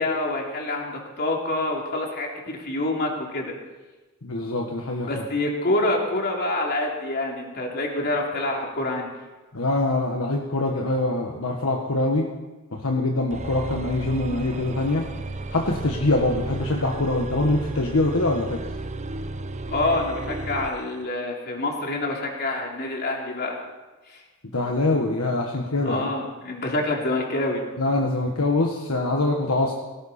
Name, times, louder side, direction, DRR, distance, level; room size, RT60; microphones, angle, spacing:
voice 1, 0.0-3.5 5.0-9.1 19.7-23.6 24.1-24.2 25.8-27.6, left 2 dB, 50° left, 0 dB, 3.1 m, -26 dB
voice 2, 4.2-5.1 9.5-12.3 12.7-15.0 15.5-18.6 24.5-26.1 27.8-29.7, left 2 dB, 75° left, 1 dB, 1.5 m, -24 dB
sound 1, 13.3-20.8, right 2 dB, 35° right, 0.7 m, -34 dB
18.0 x 17.5 x 4.3 m, 1.2 s
head